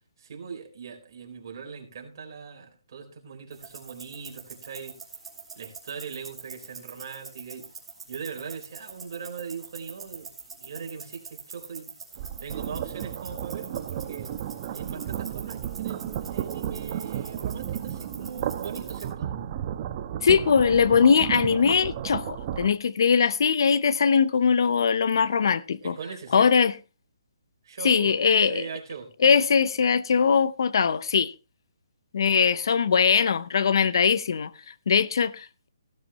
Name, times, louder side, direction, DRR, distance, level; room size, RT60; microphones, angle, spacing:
voice 1, 0.2-5.0 5.6-7.7 8.1-12.0 12.4-14.3 14.7-19.3 25.8-26.7 27.6-29.1 32.2-32.4, right 6 dB, 45° right, 4.1 m, -40 dB
sound 1, 3.5-19.1, right 5 dB, 10° right, 2.7 m, -45 dB
sound 2, 12.2-22.7, right 10 dB, 30° right, 1.0 m, -33 dB
voice 2, 20.2-25.9 26.3-26.7 27.8-28.7 29.2-31.3 32.1-35.5, left 6 dB, 55° left, 0.8 m, -21 dB
16.0 x 12.5 x 3.0 m
hypercardioid pair, 160°, 3 cm